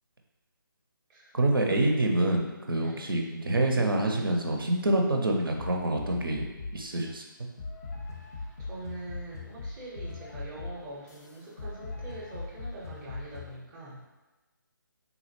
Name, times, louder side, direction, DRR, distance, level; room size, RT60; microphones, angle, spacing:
voice 1, 1.3-6.4 6.7-7.2, right 1 dB, 75° right, 2 dB, 0.5 m, -26 dB
sound 1, 5.6-6.9 7.6-13.6, left 3 dB, 45° left, 0.5 m, -40 dB
voice 2, 8.0-14.2, right 2 dB, 15° right, -6 dB, 0.5 m, -44 dB
3.6 x 2.0 x 3.0 m, 1.1 s
figure-of-eight pair, 145°, 12 cm